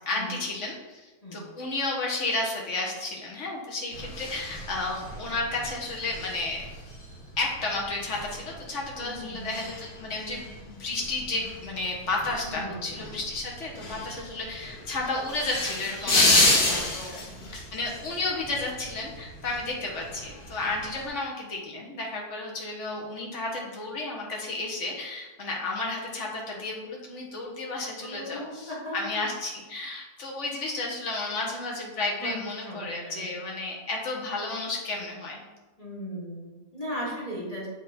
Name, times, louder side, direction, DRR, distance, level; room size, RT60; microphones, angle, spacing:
voice 1, 0.0-6.7 7.4-35.4, left 2 dB, 45° left, -2 dB, 1.5 m, -32 dB
sound 1, 3.9-21.1, left 2 dB, 65° left, 1.8 m, -31 dB
voice 2, 9.0-9.5 12.5-12.9 16.2-17.3 28.0-29.2 32.2-32.4 32.6-33.3 35.8-37.7, equal, 25° left, -5 dB, 1.7 m, -38 dB
7.4 x 3.9 x 4.3 m, 1.2 s
omnidirectional pair, 1.8 m